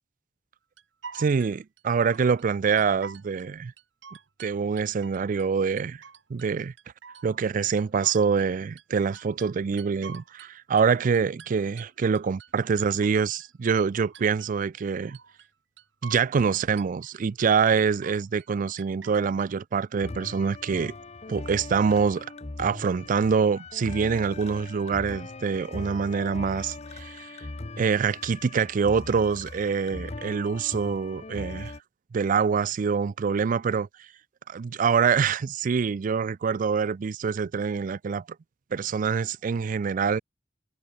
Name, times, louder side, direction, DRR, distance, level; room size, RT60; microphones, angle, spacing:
sound 1, 0.8-2.5 2.8-3.5 3.8-5.5 5.8-6.5 6.8-10.5 10.8-13.5 13.8-14.5 14.8-15.5 15.8-16.5 16.8-17.5 17.8-18.5 18.8-19.5, right 6 dB, 75° right, 1.4 m, -47 dB
voice 1, 1.1-3.7 4.4-6.0 6.3-6.7 7.2-15.2 16.0-20.9 21.3-22.3 22.6-27.5 27.8-31.7 32.1-33.9 34.5-38.2 38.7-40.2, right 6 dB, 45° right, 0.4 m, -25 dB
sound 2, 20.0-31.8, left 2 dB, 35° left, 0.9 m, -40 dB
head